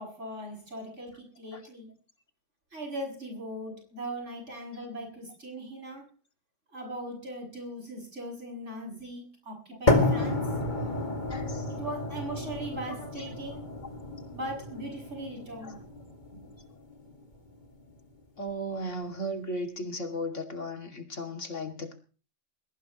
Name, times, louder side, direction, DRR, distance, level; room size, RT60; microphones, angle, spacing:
voice 1, 0.0-1.9 2.7-6.1 6.7-10.5 11.7-13.6 14.3-15.8 16.3-16.4, right 1 dB, 70° right, 2 dB, 7.6 m, -39 dB
sound 1, 9.9-17.9, left 2 dB, 40° left, 2.4 m, -31 dB
voice 2, 11.3-11.6 13.0-13.1 13.5-13.6 15.6-15.8 18.4-21.9, equal, 75° left, 4 dB, 2.9 m, -36 dB
21.0 x 19.0 x 3.1 m, 0.39 s
omnidirectional pair, 1.3 m